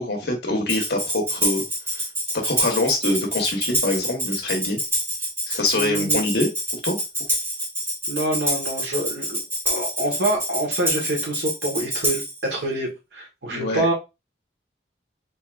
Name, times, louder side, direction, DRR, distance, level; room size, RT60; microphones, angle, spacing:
voice 1, 0.0-1.6 2.3-4.8 5.5-7.0 13.5-13.9, left 2 dB, 70° left, 2 dB, 1.3 m, -24 dB
Tambourine, 0.7-12.4, equal, 15° right, 1.8 m, -26 dB
voice 2, 5.7-6.2 8.1-9.4 9.6-12.2 12.5-13.9, right 1 dB, 80° right, 0 dB, 1.6 m, -26 dB
4.1 x 3.5 x 2.5 m, 0.25 s
head